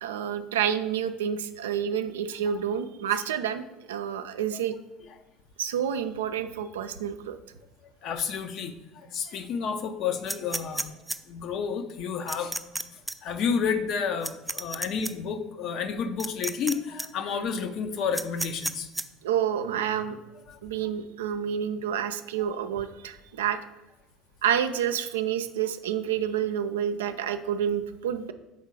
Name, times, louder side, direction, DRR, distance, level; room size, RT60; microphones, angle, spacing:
voice 1, 0.0-3.6 3.9-4.7 5.6-7.4 19.2-20.2 20.6-23.6 24.4-28.3, right 9 dB, 80° right, 9 dB, 0.4 m, -29 dB
voice 2, 8.0-10.9 11.3-12.6 13.2-18.9 20.5-20.6, left 6 dB, 55° left, 8 dB, 0.6 m, -30 dB
sound 1, 10.3-11.2 12.3-12.8 13.1-13.2 14.2-15.1 16.2-16.7 17.0-17.1 18.1-19.0, right 1 dB, 5° right, 0.4 m, -31 dB
5.7 x 3.6 x 4.8 m, 0.99 s
hypercardioid pair, 70°, 0 cm